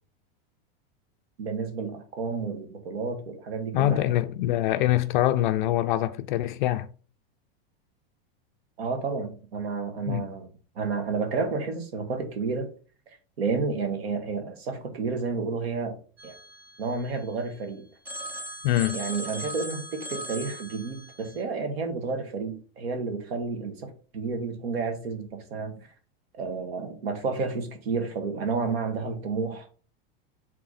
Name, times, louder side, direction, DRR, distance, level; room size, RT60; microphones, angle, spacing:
voice 1, 1.4-4.1 8.8-10.5 10.8-12.7 13.1-16.0 16.2-16.4 16.8-17.8 18.9-25.8 26.3-29.7, right 4 dB, 90° right, 2.0 m, -31 dB
voice 2, 3.7-6.9 10.1-10.2 18.6-19.0, left 14 dB, 55° left, 0.5 m, -24 dB
Telephone, 16.2-17.6 18.1-21.4, right 1 dB, 5° right, 0.4 m, -39 dB
8.0 x 3.6 x 4.1 m
supercardioid pair, 165°, 30 cm